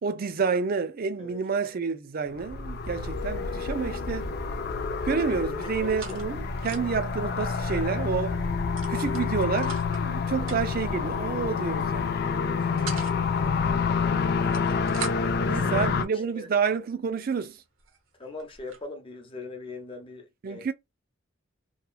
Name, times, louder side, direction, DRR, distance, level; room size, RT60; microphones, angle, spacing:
voice 1, 0.0-4.3 5.0-8.4 8.9-12.2 15.5-17.6 20.4-20.7, right 5 dB, 45° right, 0.4 m, -29 dB
sound 1, 2.3-16.0, left 5 dB, 55° left, 0.4 m, -28 dB
sound 2, 4.2-4.7 5.0-7.1 7.4-7.5 7.8-8.0 8.7-10.1 10.4-10.9 11.7-12.0 12.4-13.2 14.2-15.4 16.2-16.3 16.9-17.0 17.5-17.6 17.8-18.8, right 6 dB, 75° right, 0.8 m, -42 dB
voice 2, 5.6-6.2 10.3-10.5 12.3-12.6 12.9-13.3 15.4-15.7 16.4-16.5 18.2-20.7, left 2 dB, 25° left, 0.7 m, -41 dB
2.9 x 2.3 x 2.3 m
head